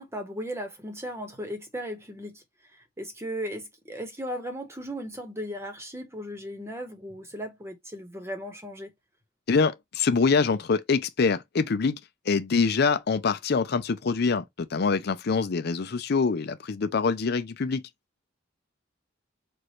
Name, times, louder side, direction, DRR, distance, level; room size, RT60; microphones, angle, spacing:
voice 1, 0.0-2.4 2.7-8.9, equal, 15° right, 1.2 m, -36 dB
voice 2, 9.5-12.0 12.3-17.8, left 4 dB, 55° left, 0.5 m, -25 dB
4.7 x 2.5 x 3.1 m
head